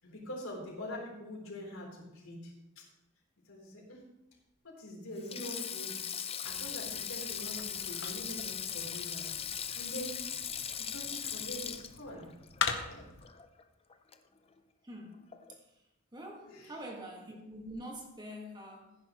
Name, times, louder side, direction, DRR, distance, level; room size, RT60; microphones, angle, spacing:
voice 1, 0.0-2.9 3.5-4.1 4.6-9.3 9.7-10.2 10.8-12.3 12.9-13.1 16.5-16.8, equal, 80° left, -2 dB, 3.7 m, -44 dB
Sink (filling or washing), 5.2-13.6 13.9-14.1 15.3-15.6, left 8 dB, 30° left, 0.6 m, -39 dB
sound 1, 6.4-13.3, left 6 dB, 60° left, 1.1 m, -42 dB
voice 2, 14.8-15.6 16.1-19.0, equal, 20° right, 0 dB, 1.8 m, -45 dB
15.0 x 10.5 x 3.1 m, 0.93 s
head